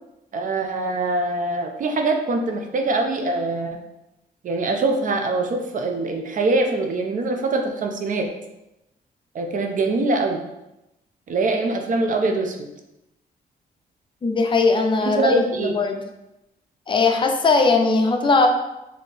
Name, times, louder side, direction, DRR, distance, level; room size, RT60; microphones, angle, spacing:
voice 1, 0.3-3.8 4.4-8.3 9.3-10.4 11.3-12.7 15.1-15.7, right 2 dB, 50° right, 3 dB, 0.5 m, -23 dB
voice 2, 14.2-16.0 16.9-18.5, left 3 dB, 30° left, 3 dB, 0.5 m, -19 dB
4.2 x 2.7 x 3.2 m, 0.92 s
cardioid pair, 120°, 17 cm